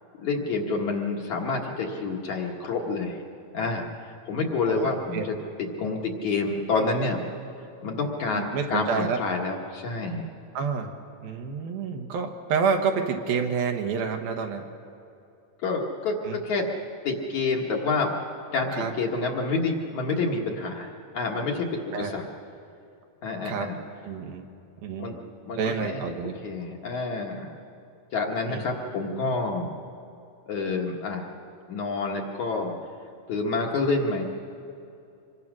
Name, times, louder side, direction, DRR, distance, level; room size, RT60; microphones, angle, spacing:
voice 1, 0.2-3.2 3.5-7.2 7.8-10.3 15.6-16.7 17.0-18.1 18.5-22.2 23.2-23.8 25.0-27.5 28.1-29.7 30.5-31.3 31.7-32.7 33.3-34.3, left 3 dB, 55° left, 0 dB, 2.4 m, -28 dB
voice 2, 4.7-5.2 8.3-9.2 10.5-10.9 11.2-14.7 16.2-16.4 18.7-18.9 21.9-22.2 23.4-23.7 24.0-24.5 24.8-25.2 25.6-26.3 28.5-28.6, right 6 dB, 70° right, 4 dB, 3.0 m, -28 dB
26.5 x 23.0 x 6.2 m, 2.6 s
omnidirectional pair, 4.6 m